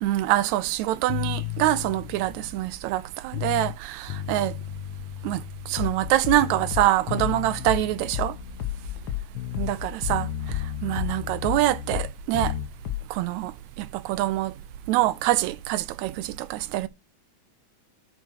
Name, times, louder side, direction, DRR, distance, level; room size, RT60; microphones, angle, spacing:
voice 1, 0.0-4.5 5.2-8.3 9.6-10.3 10.8-12.5 13.1-13.5 13.8-14.5 14.9-16.9, right 15 dB, 80° right, 1.8 m, -25 dB
sound 1, 1.1-3.8 4.1-6.1 6.4-9.8 10.1-12.7, left 11 dB, 80° left, 1.6 m, -35 dB
sound 2, 5.8-10.7 11.0-13.2, left 13 dB, 60° left, 1.3 m, -31 dB
6.3 x 4.7 x 6.3 m
omnidirectional pair, 3.4 m